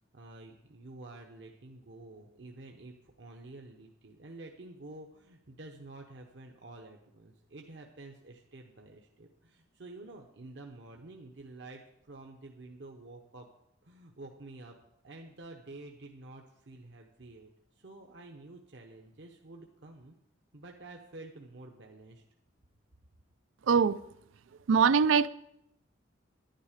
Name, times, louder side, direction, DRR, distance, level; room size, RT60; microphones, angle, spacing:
voice 1, 0.1-13.5 13.8-14.7 15.0-20.1 20.5-22.2, right 2 dB, 65° right, 0.9 m, -49 dB
voice 2, 23.7-24.0 24.7-25.3, right 6 dB, 85° right, 0.4 m, -22 dB
11.0 x 10.5 x 5.0 m
head